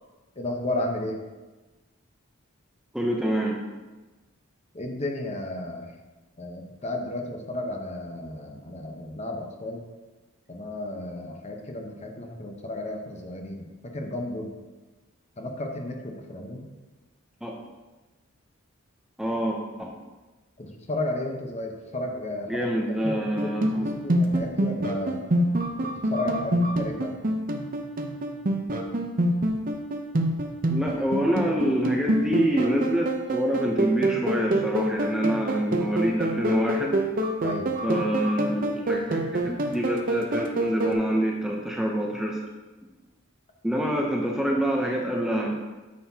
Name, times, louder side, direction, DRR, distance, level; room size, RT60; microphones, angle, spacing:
voice 1, 0.4-1.2 4.7-5.9 6.4-9.8 10.5-14.5 15.4-16.6 20.6-22.7 23.0-25.2 25.8-27.1 37.4-37.7, left 1 dB, 30° left, 2 dB, 0.9 m, -33 dB
voice 2, 2.9-3.6 17.4-17.5 19.2-19.9 22.5-23.9 30.7-37.1 37.8-42.4 43.6-45.6, equal, 5° right, -1 dB, 0.6 m, -26 dB
sound 1, 23.4-40.9, right 1 dB, 40° right, 0.7 m, -27 dB
9.3 x 6.6 x 2.8 m, 1.2 s
head